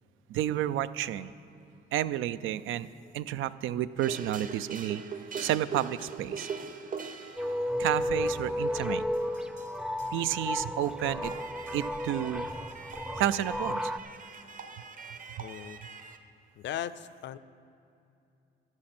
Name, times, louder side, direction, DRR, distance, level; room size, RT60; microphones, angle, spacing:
voice 1, 0.3-1.3 1.9-2.9 3.1-5.0 5.3-6.5 7.8-9.0 10.1-11.3 11.7-12.5 13.2-13.9, right 12 dB, 85° right, 15 dB, 0.4 m, -31 dB
sound 1, 4.0-16.2, right 5 dB, 45° right, 0.9 m, -43 dB
sound 2, 7.4-14.0, left 1 dB, 5° right, 0.4 m, -33 dB
voice 2, 15.4-15.8 16.6-17.4, left 10 dB, 65° left, 15 dB, 0.5 m, -37 dB
13.5 x 9.8 x 4.3 m, 2.7 s
cardioid pair, 90°, 20 cm